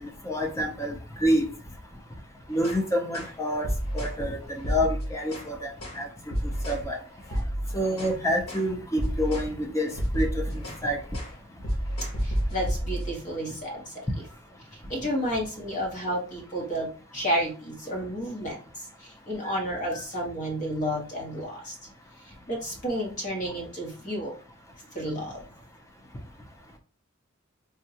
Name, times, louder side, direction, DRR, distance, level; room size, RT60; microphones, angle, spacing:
voice 1, 0.0-1.5 2.5-3.7 3.9-6.3 6.7-7.0 7.7-11.0, equal, 15° left, 3 dB, 0.5 m, -28 dB
sound 1, 2.5-2.8 3.1-3.4 3.6-4.2 4.6-5.5 5.8-6.0 6.3-6.9 7.2-8.2 8.5-8.7 9.0-9.5 9.8-10.9 11.1-11.4 11.6-13.1, equal, 85° left, 1.1 m, -30 dB
voice 2, 12.2-13.9 14.9-18.6 19.3-21.7 22.5-24.3 24.9-25.4, equal, 40° left, -1 dB, 1.1 m, -31 dB
3.5 x 2.2 x 2.8 m, 0.36 s
head